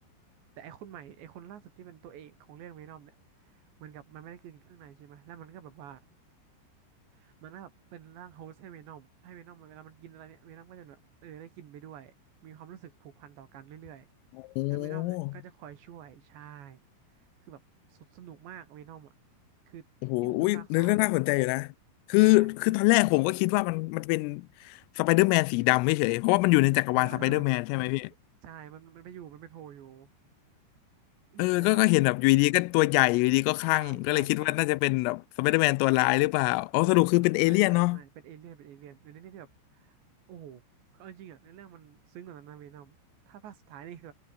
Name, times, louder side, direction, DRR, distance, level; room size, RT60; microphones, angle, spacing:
voice 1, 0.6-3.2 3.4-6.0 7.1-12.1 12.4-14.1 14.7-16.8 17.4-17.6 17.9-19.1 19.7-19.9 20.2-21.1 22.2-22.6 26.9-27.8 28.4-30.1 31.3-31.9 33.7-34.6 36.8-37.0 37.4-40.0 40.3-40.6 40.9-43.0 43.3-44.1, right 10 dB, 65° right, 4.4 m, -48 dB
voice 2, 14.6-15.3 20.0-21.7 22.1-28.1 31.4-38.0, left 23 dB, 90° left, 3.3 m, -24 dB
omnidirectional pair, 5.8 m